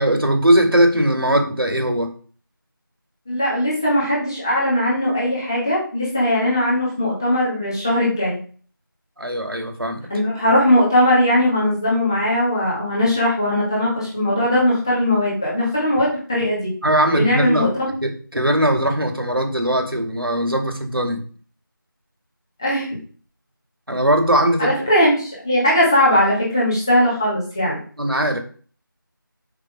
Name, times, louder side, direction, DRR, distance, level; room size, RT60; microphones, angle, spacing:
voice 1, 0.0-2.1 9.2-10.1 16.8-17.7 18.0-21.2 23.9-24.7 28.0-28.4, right 1 dB, 85° right, 4 dB, 2.4 m, -19 dB
voice 2, 3.3-8.4 10.1-16.7 17.1-17.9 22.6-23.0 24.6-27.8, left 1 dB, 10° left, -7 dB, 1.9 m, -19 dB
6.9 x 5.5 x 5.1 m, 0.43 s
figure-of-eight pair, 175°, 12 cm